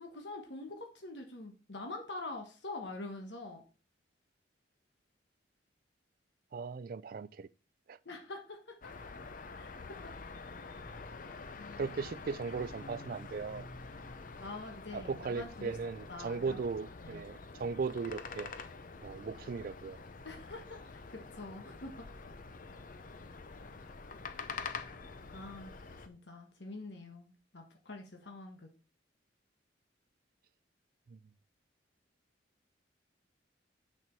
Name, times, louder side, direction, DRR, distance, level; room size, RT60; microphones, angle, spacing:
voice 1, 0.0-3.6 8.0-8.7 9.6-10.1 11.5-11.8 14.4-15.7 16.1-16.6 17.0-17.3 20.2-21.9 25.3-25.7 26.0-28.7, left 2 dB, 70° left, 1.3 m, -45 dB
voice 2, 6.5-7.5 7.9-8.0 11.8-13.7 14.9-18.5 19.0-20.0 31.1-31.2, right 5 dB, 50° right, 0.3 m, -37 dB
sound 1, 8.8-26.1, left 4 dB, 45° left, 0.6 m, -47 dB
6.7 x 6.1 x 4.5 m
head